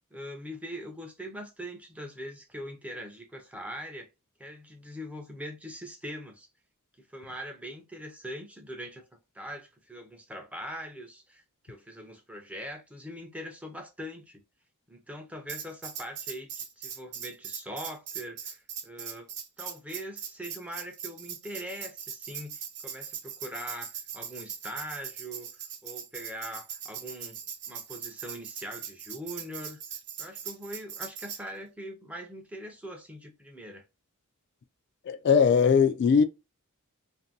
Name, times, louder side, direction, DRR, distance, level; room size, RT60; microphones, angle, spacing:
voice 1, 0.1-4.1 4.4-6.5 7.1-9.0 9.3-14.4 14.9-19.3 19.6-25.5 25.8-27.4 27.7-29.8 30.2-33.8, equal, 5° right, 0.5 m, -42 dB
Tambourine, 15.5-31.4, right 8 dB, 55° right, 0.7 m, -40 dB
voice 2, 35.1-36.2, left 6 dB, 55° left, 0.3 m, -20 dB
2.6 x 2.6 x 2.6 m
head